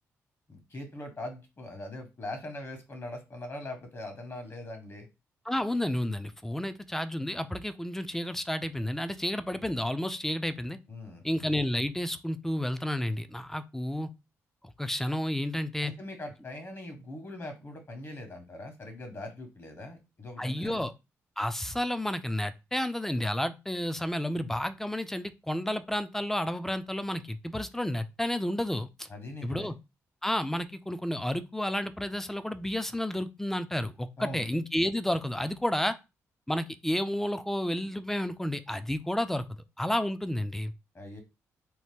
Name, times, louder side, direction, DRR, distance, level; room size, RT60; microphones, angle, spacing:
voice 1, 0.5-5.1 10.9-11.2 15.8-20.9 29.1-29.7 34.2-34.4 40.9-41.2, left 1 dB, 40° left, 5 dB, 1.2 m, -41 dB
voice 2, 5.5-10.8 11.2-14.1 14.8-15.9 20.4-20.9 21.4-29.1 29.4-29.7 30.2-36.0 36.5-39.4 39.8-40.7, left 1 dB, 5° left, 12 dB, 0.4 m, -31 dB
2.8 x 2.1 x 3.5 m, 0.26 s
supercardioid pair, 55°, 6 cm